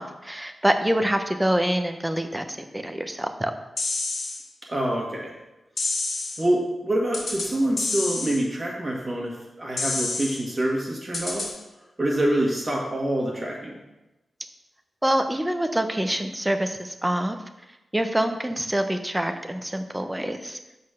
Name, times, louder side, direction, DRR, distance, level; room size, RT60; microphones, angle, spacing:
voice 1, 0.0-3.5 15.0-17.4 17.9-20.6, right 1 dB, 5° right, 7 dB, 0.5 m, -26 dB
sound 1, 3.8-4.4 5.8-6.4 7.1-7.5 7.8-8.4 9.8-10.4 11.1-11.5, left 3 dB, 55° left, 2.0 m, -28 dB
voice 2, 4.7-5.3 6.4-11.5 12.0-13.8, right 1 dB, 25° right, -2 dB, 1.8 m, -26 dB
7.5 x 4.1 x 6.4 m, 0.98 s
wide cardioid pair, 170°, 0 cm